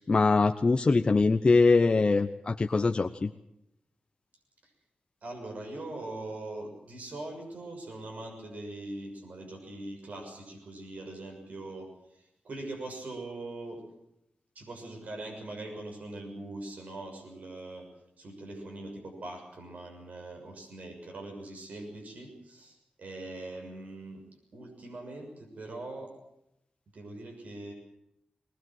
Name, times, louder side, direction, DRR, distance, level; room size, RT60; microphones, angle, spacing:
voice 1, 0.0-3.3, left 3 dB, 35° left, 5 dB, 0.7 m, -23 dB
voice 2, 5.2-13.8 14.5-17.9 18.2-24.2 24.5-26.1 26.9-27.7, right 2 dB, 70° right, 2 dB, 6.6 m, -42 dB
20.5 x 20.5 x 7.7 m, 0.81 s
wide cardioid pair, 140°, 3 cm